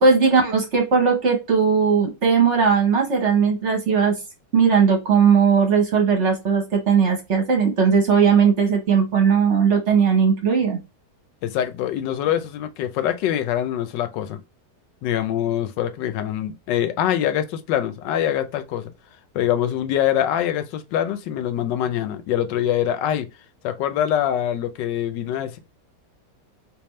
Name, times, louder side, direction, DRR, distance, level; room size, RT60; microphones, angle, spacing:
voice 1, 0.0-4.1 4.5-10.8, right 6 dB, 50° right, 1.1 m, -18 dB
voice 2, 11.4-14.4 15.0-18.9 19.3-23.3 23.6-25.6, left 10 dB, 85° left, 1.3 m, -24 dB
3.5 x 2.9 x 3.1 m
omnidirectional pair, 1.9 m